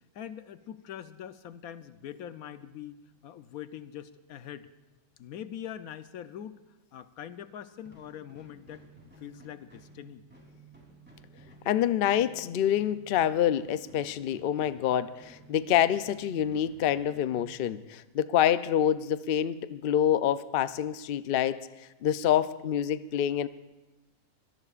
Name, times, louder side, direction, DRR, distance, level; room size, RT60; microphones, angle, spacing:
voice 1, 0.1-4.7 5.2-6.6 6.9-8.8 9.2-10.2, left 10 dB, 85° left, 11 dB, 1.2 m, -43 dB
sound 1, 7.8-18.0, right 2 dB, 5° right, 3.3 m, -55 dB
voice 2, 11.7-21.6 22.0-23.5, left 10 dB, 60° left, 13 dB, 0.6 m, -26 dB
24.5 x 17.5 x 2.5 m, 1.1 s
omnidirectional pair, 1.5 m